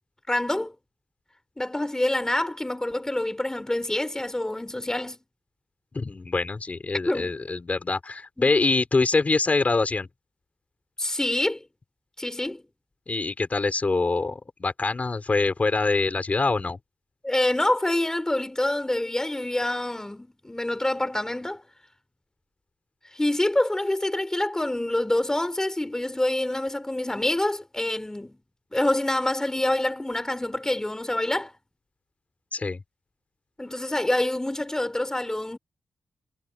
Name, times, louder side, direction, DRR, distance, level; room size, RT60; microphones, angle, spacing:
voice 1, 0.3-0.7 1.6-5.2 7.1-7.4 8.4-8.5 11.0-11.6 12.2-12.6 17.2-21.6 23.1-28.4 28.7-31.5 33.6-35.6, left 1 dB, 10° left, 5.5 m, -26 dB
voice 2, 5.9-10.1 13.1-16.8 32.5-32.8, left 3 dB, 35° left, 6.1 m, -24 dB
cardioid pair, 85°, 4 cm